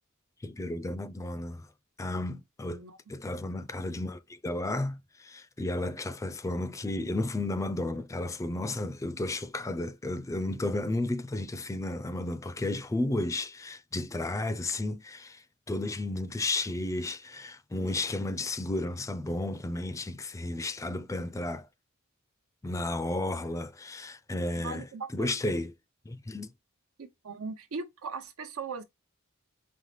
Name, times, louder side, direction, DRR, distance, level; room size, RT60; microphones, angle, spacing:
voice 1, 0.4-1.7 2.0-2.8 3.1-21.7 22.6-25.7 26.1-26.5, left 2 dB, 15° left, 0.3 m, -33 dB
voice 2, 24.6-25.3 27.0-28.8, right 4 dB, 90° right, 0.8 m, -39 dB
5.4 x 2.0 x 3.1 m
head